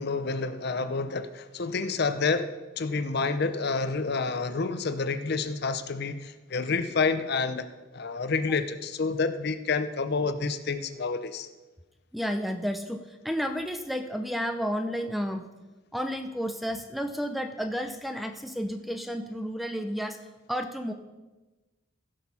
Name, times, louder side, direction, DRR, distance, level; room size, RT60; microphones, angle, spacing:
voice 1, 0.0-7.7 7.9-11.5, left 4 dB, 50° left, 11 dB, 0.6 m, -29 dB
voice 2, 12.1-15.4 15.9-20.2 20.5-20.9, equal, ahead, 7 dB, 0.5 m, -31 dB
15.5 x 6.4 x 5.6 m, 1.2 s
head